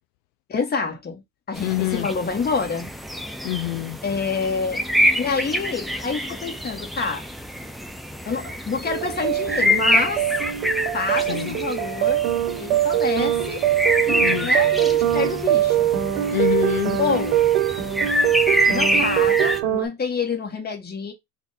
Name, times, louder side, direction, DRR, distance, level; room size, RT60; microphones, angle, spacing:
voice 1, 0.5-1.2 1.5-2.9 4.0-4.8 5.2-7.3 8.3-10.3 10.9-12.2 12.6-13.6 14.0-15.9 17.0-17.4 18.7-21.1, left 4 dB, 25° left, 1.7 m, -27 dB
sound 1, 1.5-19.6, equal, ahead, 0.3 m, -26 dB
voice 2, 1.6-2.1 3.4-4.0 11.3-11.5 14.2-14.5 16.3-17.0, left 18 dB, 65° left, 0.5 m, -25 dB
sound 2, 8.9-19.9, right 12 dB, 75° right, 1.2 m, -22 dB
3.4 x 2.6 x 4.1 m
supercardioid pair, 105°, 42 cm